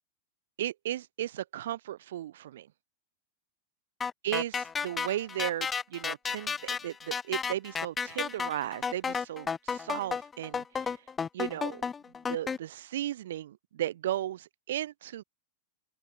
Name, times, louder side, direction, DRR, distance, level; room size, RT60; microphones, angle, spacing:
voice 1, 0.6-2.7 4.2-10.6 11.3-11.8 12.3-15.2, right 12 dB, 80° right, 0.7 m, -35 dB
sound 1, 4.0-12.6, left 6 dB, 15° left, 0.4 m, -33 dB
open air
supercardioid pair, 135°, 0 cm